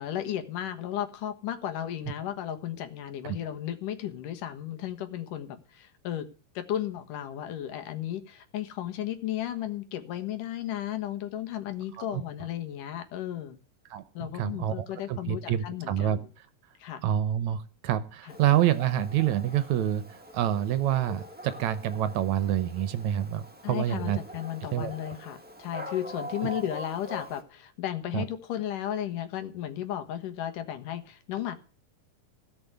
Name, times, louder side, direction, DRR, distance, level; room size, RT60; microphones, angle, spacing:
voice 1, 0.0-6.3 6.6-13.6 14.1-16.2 16.8-17.0 18.3-18.4 23.6-31.6, left 11 dB, 80° left, 8 dB, 2.9 m, -34 dB
voice 2, 13.9-16.5 17.0-24.2 24.7-24.9 28.1-28.2, right 11 dB, 75° right, 13 dB, 2.0 m, -27 dB
Dog, 18.3-27.4, equal, 10° right, 0.5 m, -44 dB
17.0 x 6.1 x 8.0 m, 0.37 s
omnidirectional pair, 3.7 m